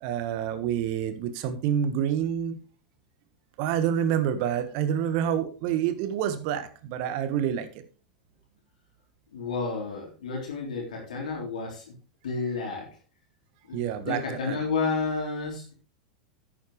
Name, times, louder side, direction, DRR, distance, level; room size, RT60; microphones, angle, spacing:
voice 1, 0.0-2.6 3.6-7.8 13.7-14.2 14.5-14.6, right 9 dB, 55° right, 11 dB, 1.4 m, -27 dB
voice 2, 9.3-11.9 12.2-12.9 13.7-15.7, left 4 dB, 75° left, -2 dB, 3.6 m, -31 dB
10.5 x 9.2 x 3.3 m, 0.37 s
hypercardioid pair, 90°, 4 cm